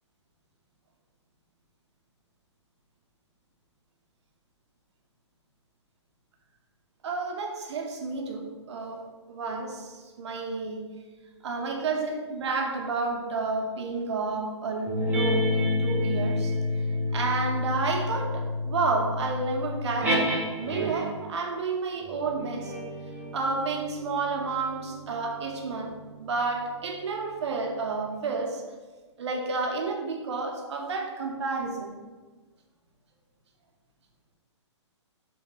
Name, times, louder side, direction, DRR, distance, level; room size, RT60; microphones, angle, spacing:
voice 1, 7.0-10.8 11.4-16.5 17.1-22.7 23.3-28.6 29.2-32.0, right 4 dB, 65° right, 2 dB, 0.5 m, -30 dB
sound 1, 14.9-21.3 22.0-26.9, left 1 dB, 10° right, 0.5 m, -30 dB
2.9 x 2.1 x 3.1 m, 1.3 s
hypercardioid pair, 130°, 15 cm